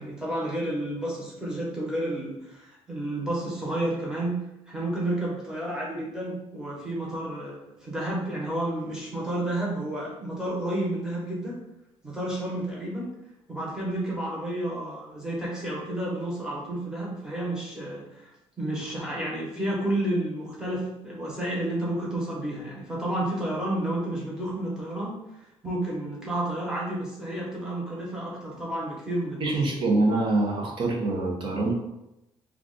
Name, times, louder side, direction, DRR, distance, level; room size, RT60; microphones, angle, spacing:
voice 1, 0.0-4.4 4.7-11.6 12.0-13.1 13.5-18.3 18.6-25.2 25.6-29.5, right 1 dB, 5° right, -5 dB, 0.9 m, -31 dB
voice 2, 29.4-31.7, right 2 dB, 55° right, -2 dB, 0.8 m, -25 dB
2.4 x 2.3 x 3.8 m, 0.89 s
cardioid pair, 145°, 10 cm